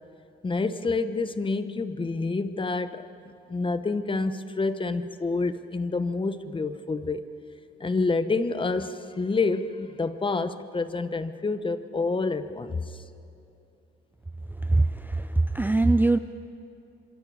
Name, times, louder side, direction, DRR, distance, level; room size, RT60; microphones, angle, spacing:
voice 1, 0.4-3.1 3.5-7.2 7.8-13.0, left 3 dB, 25° left, 11 dB, 1.1 m, -28 dB
voice 2, 14.7-16.2, right 2 dB, 10° right, 11 dB, 0.5 m, -22 dB
27.0 x 24.0 x 4.9 m, 2.7 s
cardioid pair, 90°, 20 cm